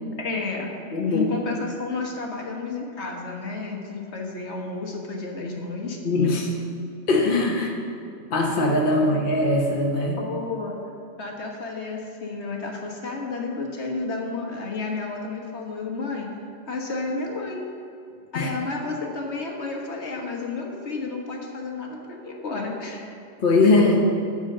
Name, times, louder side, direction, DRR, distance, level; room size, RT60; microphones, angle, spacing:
voice 1, 0.2-0.7 1.0-6.0 9.0-9.1 10.1-10.8 11.2-16.3 16.7-17.6 18.3-23.2, left 3 dB, 60° left, 0 dB, 1.5 m, -31 dB
voice 2, 0.9-1.3 6.0-6.5 7.1-7.7 8.3-10.2 18.3-18.5 23.4-24.0, left 2 dB, 45° left, -2 dB, 1.1 m, -21 dB
10.0 x 4.4 x 7.6 m, 2.6 s
omnidirectional pair, 1.3 m